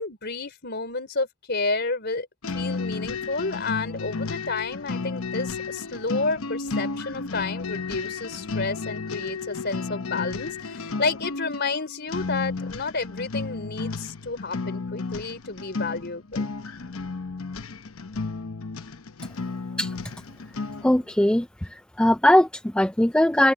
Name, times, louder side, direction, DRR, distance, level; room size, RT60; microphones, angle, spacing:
voice 1, 0.0-16.5, left 3 dB, 50° left, 4.0 m, -30 dB
sound 1, 2.4-21.0, left 4 dB, 80° left, 0.9 m, -33 dB
voice 2, 20.8-23.5, left 1 dB, 5° left, 0.3 m, -20 dB
head